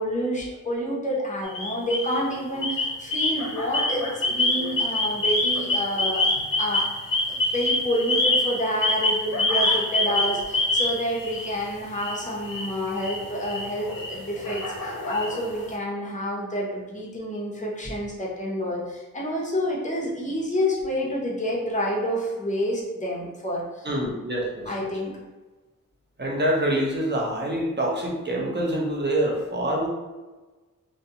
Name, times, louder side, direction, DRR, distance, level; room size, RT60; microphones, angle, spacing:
voice 1, 0.0-6.9 7.3-23.9 24.7-25.1, equal, 20° left, -3 dB, 0.8 m, -28 dB
sound 1, 1.4-2.2 2.6-11.6 11.9-15.7, left 2 dB, 75° left, 0.6 m, -26 dB
voice 2, 23.8-24.7 26.2-29.9, right 1 dB, 30° right, -2 dB, 0.7 m, -25 dB
2.5 x 2.2 x 2.8 m, 1.2 s
cardioid pair, 55°, 33 cm